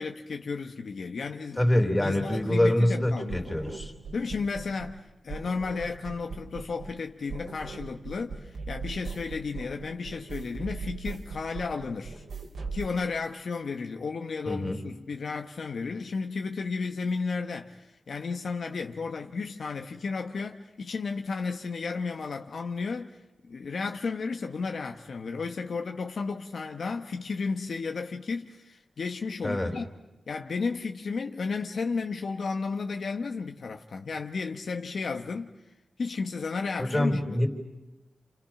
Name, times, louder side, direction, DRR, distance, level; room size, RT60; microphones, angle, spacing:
voice 1, 0.0-1.6 2.0-3.5 4.1-12.2 12.7-23.1 23.5-29.9 30.3-35.5 36.0-37.5, left 4 dB, 65° left, 1.2 m, -33 dB
voice 2, 1.6-3.9 14.5-14.8 29.4-29.7 36.8-37.5, left 1 dB, 15° left, 3.7 m, -25 dB
sound 1, 3.3-5.0 5.3-7.0 7.3-12.9, right 4 dB, 85° right, 3.6 m, -40 dB
30.0 x 29.0 x 6.0 m
wide cardioid pair, 125°, 0 cm